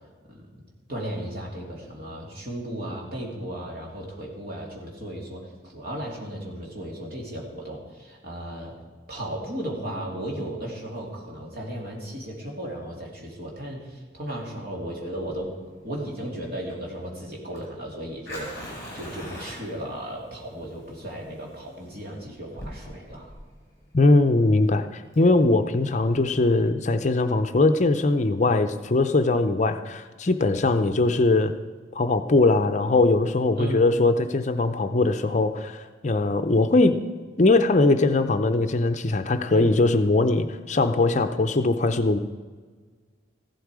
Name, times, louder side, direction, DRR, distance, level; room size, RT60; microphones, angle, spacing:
voice 1, 0.9-8.8 9.1-15.5 15.8-18.6 18.9-23.3 33.5-33.9 39.5-39.8, right 1 dB, 55° right, -2 dB, 3.1 m, -35 dB
Fire, 15.2-26.2, equal, 15° left, 5.5 m, -43 dB
voice 2, 23.9-31.5 31.9-37.0 37.4-42.2, left 2 dB, 40° left, 8 dB, 0.6 m, -21 dB
15.0 x 12.0 x 4.9 m, 1.5 s
head